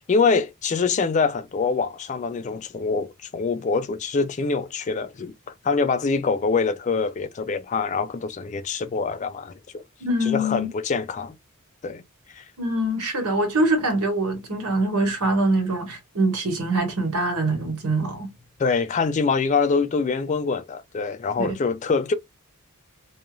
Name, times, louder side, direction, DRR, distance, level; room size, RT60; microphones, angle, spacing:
voice 1, 0.1-5.3 5.6-9.8 10.2-11.4 11.8-12.0 12.3-12.4 18.6-22.1, left 4 dB, 35° left, 0.3 m, -24 dB
voice 2, 10.0-10.7 12.6-18.3 21.4-21.6, right 1 dB, 85° right, 1.3 m, -24 dB
2.4 x 2.3 x 2.9 m
head